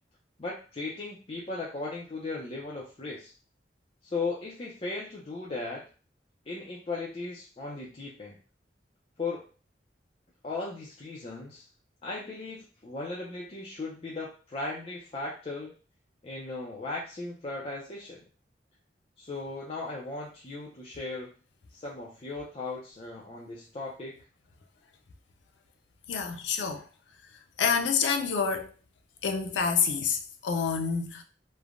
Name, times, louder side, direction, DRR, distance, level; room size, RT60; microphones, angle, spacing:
voice 1, 0.4-3.3 4.0-5.8 6.5-8.4 9.2-9.4 10.4-11.6 12.0-15.7 16.2-18.2 19.2-21.3 21.7-24.2, left 3 dB, 35° left, 0.5 m, -37 dB
voice 2, 26.1-26.9 27.6-28.7 29.2-31.2, left 6 dB, 85° left, 0.4 m, -27 dB
3.2 x 2.1 x 2.4 m
head